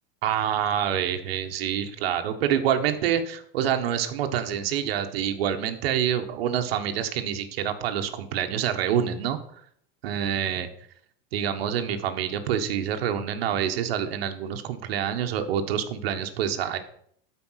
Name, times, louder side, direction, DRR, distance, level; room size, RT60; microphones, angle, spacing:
voice 1, 0.2-9.4 10.0-10.7 11.3-16.8, right 9 dB, 85° right, 7 dB, 1.6 m, -27 dB
13.0 x 5.3 x 5.8 m, 0.65 s
supercardioid pair, 175°, 29 cm